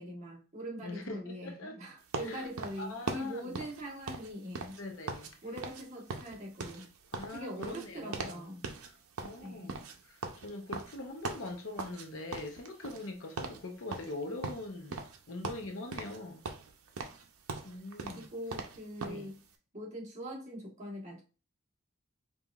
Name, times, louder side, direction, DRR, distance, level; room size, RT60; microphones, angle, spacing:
voice 1, 0.0-4.8 5.4-6.9 7.3-8.7 9.4-9.8 18.1-19.3 19.7-21.2, equal, 30° right, 1.2 m, -42 dB
voice 2, 0.8-1.7 2.2-2.5 2.8-3.6 4.8-5.3 7.1-8.4 9.2-16.4 17.6-18.3 19.0-19.3, left 2 dB, 60° left, 0.7 m, -42 dB
sound 1, 2.1-5.3 5.6-5.8 6.1-8.4 8.6-8.9 9.2-12.1 12.3-13.1 13.4-13.6 13.9-15.2 15.4-16.2 16.5-19.2, right 4 dB, 80° right, 0.6 m, -40 dB
5.4 x 2.4 x 2.3 m
head